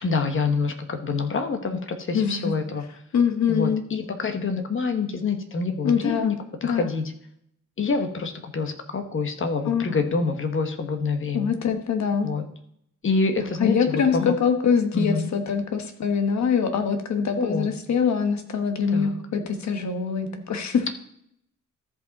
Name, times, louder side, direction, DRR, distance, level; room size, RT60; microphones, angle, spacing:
voice 1, 0.0-2.8 3.5-6.3 6.6-7.0 7.8-11.6 12.2-12.5 13.0-14.4 14.9-15.3 17.4-17.7 18.9-19.2, left 4 dB, 40° left, 6 dB, 1.2 m, -26 dB
voice 2, 2.1-2.5 3.1-3.8 5.8-6.3 6.6-6.9 9.6-10.0 11.3-12.3 13.6-20.9, left 6 dB, 60° left, 7 dB, 1.3 m, -24 dB
14.0 x 5.3 x 4.0 m, 0.72 s
wide cardioid pair, 130°, 31 cm